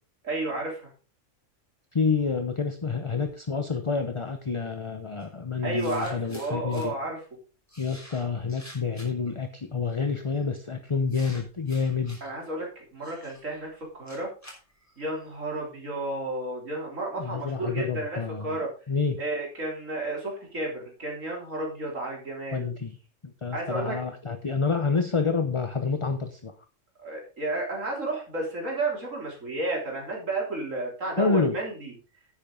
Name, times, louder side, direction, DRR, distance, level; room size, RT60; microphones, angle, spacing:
voice 1, 0.2-0.9 5.6-7.2 12.2-14.3 15.0-18.7 19.2-22.7 23.5-24.0 27.0-31.9, right 2 dB, 80° right, -1 dB, 3.8 m, -32 dB
voice 2, 1.9-6.9 7.8-12.2 17.2-18.6 18.9-19.2 22.5-23.0 23.4-26.5 31.2-31.6, left 4 dB, 30° left, 7 dB, 0.8 m, -28 dB
sound 1, 5.2-5.3 5.8-6.9 7.7-9.3 10.1-10.4 11.1-12.3 13.0-15.3, equal, 10° left, 3.6 m, -49 dB
10.5 x 9.1 x 3.8 m, 0.35 s
omnidirectional pair, 1.3 m